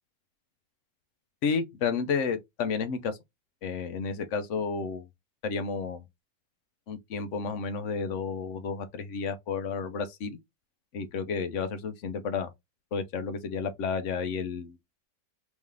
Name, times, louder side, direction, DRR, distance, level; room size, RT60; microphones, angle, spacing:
voice 1, 1.4-3.2 3.6-5.1 5.4-6.0 6.9-10.4 10.9-12.5 12.9-14.8, left 5 dB, 65° left, 0.8 m, -31 dB
3.5 x 3.1 x 3.5 m
omnidirectional pair, 1.9 m